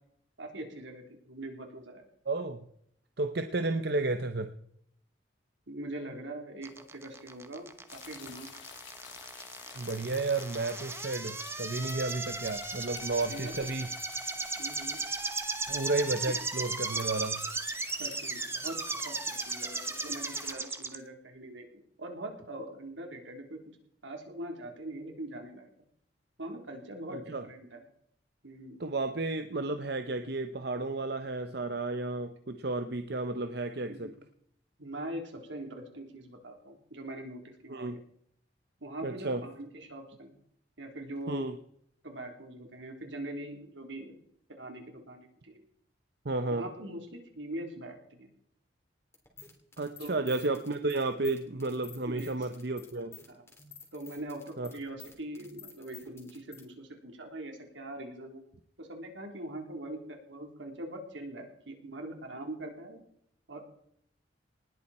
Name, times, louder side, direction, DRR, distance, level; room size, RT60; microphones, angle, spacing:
voice 1, 0.4-2.0 5.7-8.5 13.2-13.7 14.6-15.0 16.2-16.3 18.0-18.8 19.0-21.7 22.0-23.6 24.0-25.7 26.4-27.8 28.4-28.8 33.9-34.1 34.8-37.9 38.8-40.4 40.8-41.5 42.0-44.2 44.5-45.6 46.5-48.3 50.0-50.3 52.0-52.5 53.3-53.4 53.9-58.4 58.8-63.0 63.5-63.6, right 1 dB, 80° right, 3 dB, 3.6 m, -42 dB
voice 2, 2.3-2.6 3.2-4.5 9.8-13.9 15.7-17.4 27.1-27.4 28.8-34.1 37.7-38.0 39.0-39.4 41.3-41.6 46.2-46.6 49.8-53.2 54.6-54.7, right 2 dB, 55° right, 8 dB, 0.9 m, -32 dB
sound 1, 6.6-21.0, right 3 dB, 15° right, 1.0 m, -36 dB
sound 2, 7.9-20.5, left 8 dB, 75° left, 2.7 m, -49 dB
sound 3, 49.1-56.6, left 5 dB, 15° left, 3.4 m, -51 dB
19.5 x 14.0 x 4.3 m, 0.70 s
head